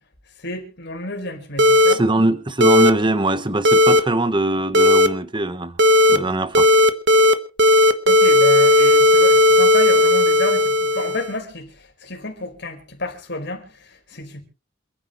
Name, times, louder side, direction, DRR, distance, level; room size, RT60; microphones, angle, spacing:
voice 1, 0.4-2.0 8.1-14.4, left 2 dB, 60° left, 4.7 m, -30 dB
sound 1, 1.6-1.9 2.6-2.9 3.6-4.0 4.7-5.1 5.8-6.2 6.5-7.3 7.6-11.3, left 1 dB, 65° right, 1.3 m, -14 dB
voice 2, 1.9-5.8 6.1-6.7, right 2 dB, 25° right, 1.1 m, -21 dB
28.5 x 10.0 x 3.1 m
head